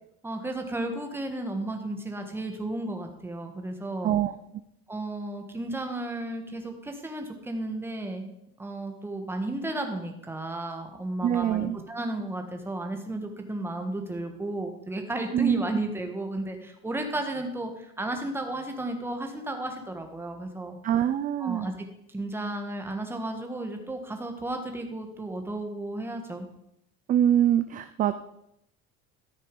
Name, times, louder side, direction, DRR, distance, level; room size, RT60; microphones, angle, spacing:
voice 1, 0.2-4.2 4.9-8.3 8.6-20.8 21.4-26.5, right 1 dB, 5° right, 4 dB, 1.4 m, -33 dB
voice 2, 11.2-11.8 15.3-15.6 20.8-21.7 27.1-28.2, right 10 dB, 25° right, 10 dB, 0.4 m, -24 dB
13.5 x 6.6 x 5.3 m, 0.78 s
cardioid pair, 165°, 32 cm